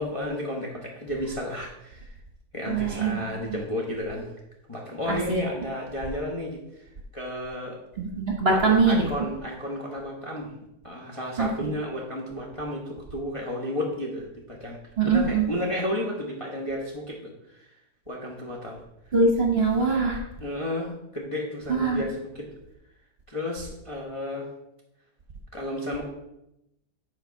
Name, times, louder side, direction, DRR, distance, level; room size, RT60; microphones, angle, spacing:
voice 1, 0.0-2.1 2.5-4.3 4.7-6.6 7.1-7.8 8.5-10.5 10.8-14.8 15.0-17.7 18.1-18.8 20.4-22.5 23.3-24.5 25.5-26.0, left 1 dB, 20° left, -2 dB, 1.0 m, -32 dB
voice 2, 2.7-3.6 5.1-5.4 8.0-9.0 11.4-11.7 15.0-15.5 19.1-20.2 21.7-22.0, right 4 dB, 40° right, 1 dB, 1.3 m, -23 dB
7.8 x 4.4 x 5.8 m, 0.86 s
omnidirectional pair, 1.8 m